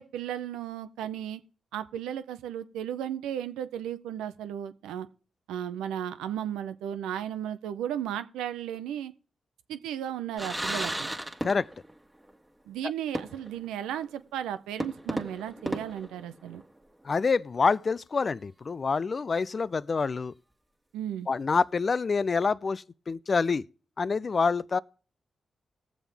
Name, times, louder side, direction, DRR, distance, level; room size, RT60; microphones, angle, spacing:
voice 1, 0.0-1.4 1.7-5.1 5.5-9.1 9.7-11.1 12.7-16.6 20.9-21.3, right 10 dB, 90° right, 0.6 m, -35 dB
sound 1, 10.4-12.0 12.2-12.3 13.2-13.7 14.0-14.1 14.8-16.8, right 1 dB, 10° right, 1.6 m, -34 dB
voice 2, 17.0-20.3 21.3-23.7 24.0-24.8, left 4 dB, 50° left, 0.4 m, -27 dB
18.0 x 7.2 x 3.4 m
supercardioid pair, 45°, 0 cm